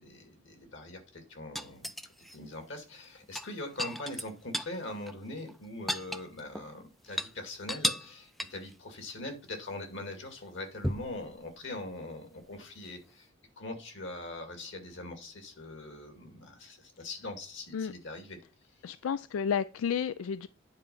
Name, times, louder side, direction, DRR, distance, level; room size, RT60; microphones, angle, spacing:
voice 1, 0.0-1.9 2.3-13.3 13.6-18.4, left 2 dB, 60° left, 2.3 m, -42 dB
sound 1, 1.6-2.4 3.2-4.8 5.1-5.2 5.5-6.7 7.0-7.3 7.7-8.1 8.4-8.7 10.8-11.2 12.9-13.0, equal, ahead, 0.4 m, -34 dB
voice 2, 18.8-20.5, left 7 dB, 85° left, 0.3 m, -31 dB
9.7 x 4.5 x 5.4 m
head